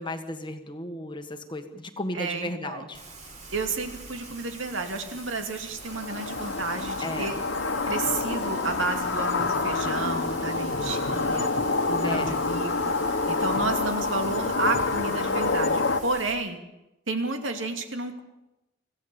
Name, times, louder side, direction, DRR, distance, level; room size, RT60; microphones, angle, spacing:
voice 1, 0.0-3.0 7.0-7.3 12.0-12.4, left 1 dB, 25° left, 7 dB, 1.5 m, -34 dB
voice 2, 2.1-2.9 3.5-7.4 7.9-11.5 11.9-12.7 13.3-16.6 17.1-18.2, right 3 dB, 70° right, 5 dB, 2.6 m, -31 dB
Rain, 2.9-16.3, right 3 dB, 40° right, 5.3 m, -45 dB
sound 1, 5.9-16.0, left 3 dB, 65° left, 1.5 m, -27 dB
26.0 x 15.5 x 7.1 m, 0.94 s
head